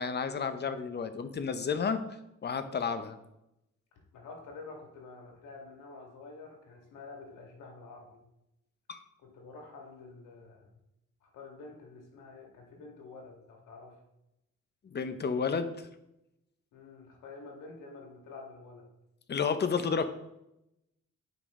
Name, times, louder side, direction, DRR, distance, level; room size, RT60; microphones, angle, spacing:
voice 1, 0.0-2.0 2.4-3.2 8.9-9.0 14.8-15.9 19.3-20.0, left 5 dB, 35° left, 10 dB, 0.8 m, -31 dB
voice 2, 3.9-8.2 9.2-10.7 11.2-14.0 16.7-18.8, left 3 dB, 85° left, 1 dB, 2.1 m, -48 dB
8.9 x 5.3 x 3.7 m, 0.87 s
cardioid pair, 90°, 30 cm